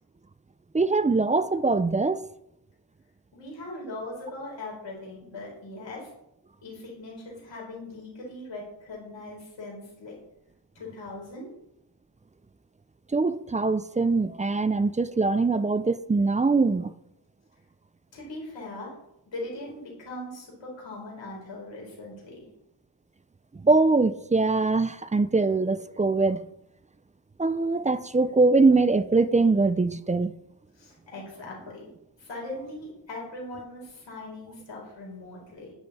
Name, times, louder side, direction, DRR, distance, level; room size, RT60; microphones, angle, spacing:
voice 1, 0.7-2.2 13.1-16.9 23.5-26.4 27.4-30.3, right 3 dB, 20° right, 0.3 m, -22 dB
voice 2, 3.3-6.1 6.6-10.2 10.7-11.5 18.1-18.9 19.3-22.5 30.8-31.9 32.2-35.7, left 2 dB, 85° left, 4.2 m, -40 dB
10.5 x 9.8 x 4.2 m
wide cardioid pair, 130°, 43 cm